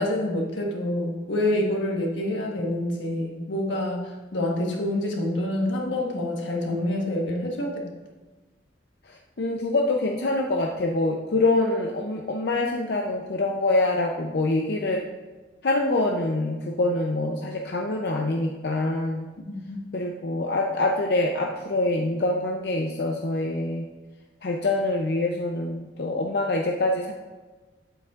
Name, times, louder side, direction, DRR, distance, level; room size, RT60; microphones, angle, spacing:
voice 1, 0.0-7.8 19.4-19.8, left 1 dB, 85° left, -1 dB, 1.4 m, -27 dB
voice 2, 9.1-15.0 15.6-19.3 19.9-23.9 24.4-27.1, left 2 dB, 60° left, 1 dB, 0.5 m, -25 dB
8.8 x 8.0 x 2.4 m, 1.3 s
head